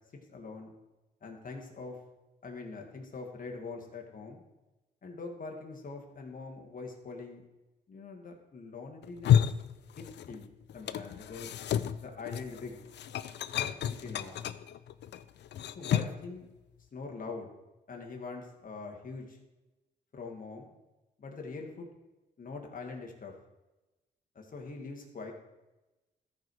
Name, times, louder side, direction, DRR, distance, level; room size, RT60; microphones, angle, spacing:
voice 1, 0.3-0.7 1.2-2.0 2.4-4.4 5.0-7.4 7.9-9.5 10.0-11.5 12.0-12.8 13.5-14.4 15.8-16.5 16.9-17.5 17.9-19.4 20.1-20.7 21.2-21.9 22.4-23.3 24.4-25.3, left 4 dB, 50° left, 1 dB, 2.0 m, -43 dB
sound 1, 9.0-10.4 10.7-16.3, left 9 dB, 70° left, 0.5 m, -31 dB
13.5 x 5.0 x 4.7 m, 1.1 s
cardioid pair, 75°, 18 cm